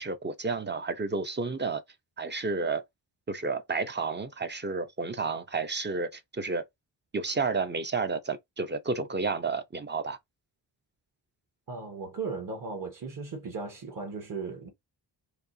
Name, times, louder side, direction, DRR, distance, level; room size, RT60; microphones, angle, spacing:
voice 1, 0.0-1.8 2.2-2.8 3.3-6.6 7.1-10.2, right 4 dB, 25° right, 0.5 m, -31 dB
voice 2, 11.7-14.7, right 4 dB, 50° right, 1.3 m, -36 dB
4.7 x 2.7 x 2.6 m
wide cardioid pair, 155°, 43 cm